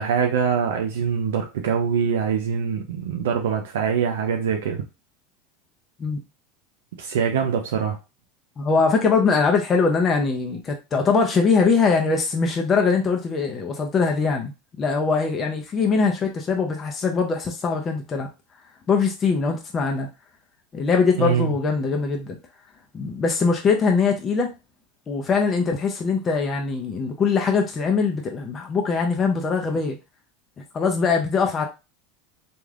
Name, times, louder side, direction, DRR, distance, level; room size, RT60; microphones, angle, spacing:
voice 1, 0.0-4.8 7.0-8.0 21.2-21.5, right 7 dB, 85° right, 3 dB, 0.5 m, -23 dB
voice 2, 8.6-18.3 18.9-20.1 20.7-22.4 22.9-24.5 25.1-30.0 30.7-31.7, left 4 dB, 30° left, 2 dB, 0.6 m, -22 dB
3.2 x 2.5 x 2.4 m, 0.27 s
supercardioid pair, 105°, 0 cm